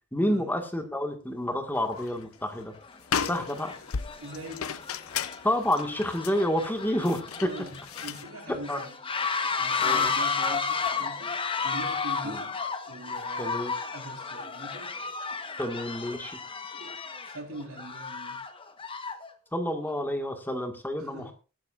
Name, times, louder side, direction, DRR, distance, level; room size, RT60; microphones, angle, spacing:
voice 1, 0.1-2.7 3.2-3.7 5.4-7.5 8.7-8.8 9.8-10.1 12.2-12.4 13.4-13.7 15.6-16.3 19.5-21.3, left 1 dB, 10° left, 1.7 m, -29 dB
sound 1, 1.8-2.2 2.6-2.7 3.0-8.3, left 7 dB, 75° left, 0.7 m, -35 dB
sound 2, 1.9-2.0 2.7-3.0 3.3-19.3, left 5 dB, 25° left, 1.1 m, -33 dB
voice 2, 4.2-4.8 7.3-8.9 9.4-15.0 16.7-18.4 21.0-21.3, right 1 dB, 80° right, 4.1 m, -43 dB
22.0 x 10.5 x 2.5 m
head